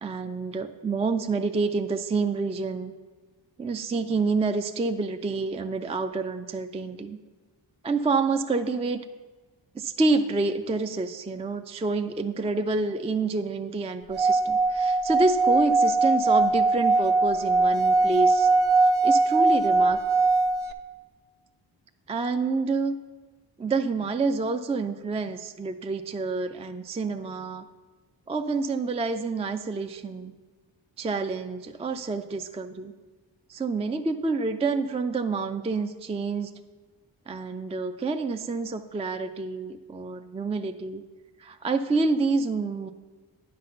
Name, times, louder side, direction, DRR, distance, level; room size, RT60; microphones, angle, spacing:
voice 1, 0.0-2.9 3.6-7.2 7.8-9.0 9.7-18.5 18.8-20.0 22.1-23.0 23.6-27.7 28.3-30.3 31.0-32.9 33.5-36.5 37.3-41.0 41.4-42.9, right 3 dB, 15° right, 7 dB, 0.3 m, -28 dB
Singing / Glass, 14.1-20.7, right 3 dB, 70° right, 0.7 m, -21 dB
9.8 x 4.1 x 6.5 m, 1.4 s
cardioid pair, 50°, 49 cm